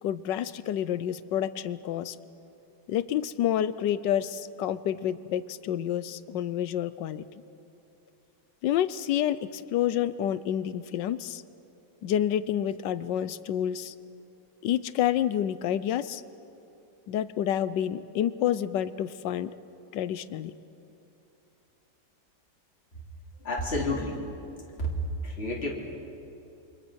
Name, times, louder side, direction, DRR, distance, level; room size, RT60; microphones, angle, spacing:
voice 1, 0.0-2.2 2.9-7.2 8.6-11.4 12.0-13.9 14.6-16.2 17.1-19.5 19.9-20.5, left 10 dB, 80° left, 15 dB, 1.4 m, -28 dB
voice 2, 23.4-24.2 24.8-24.9 25.2-25.7, left 1 dB, 35° left, -3 dB, 3.2 m, -29 dB
28.0 x 24.0 x 6.3 m, 2.8 s
omnidirectional pair, 1.9 m